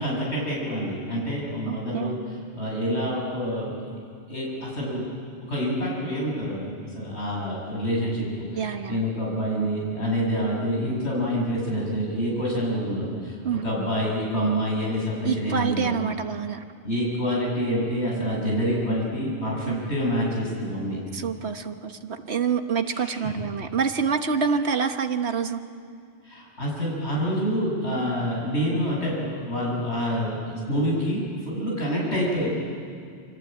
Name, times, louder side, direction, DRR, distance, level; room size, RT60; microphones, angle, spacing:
voice 1, 0.0-3.8 4.3-5.1 5.5-13.4 13.6-15.9 16.8-21.0 22.9-23.3 26.3-32.5, equal, 65° left, -4 dB, 7.0 m, -27 dB
voice 2, 1.7-2.1 8.5-9.0 13.4-13.7 15.2-16.6 19.7-19.8 21.1-25.6, right 6 dB, 65° right, 7 dB, 1.5 m, -27 dB
28.5 x 24.0 x 8.7 m, 2.3 s
omnidirectional pair, 1.2 m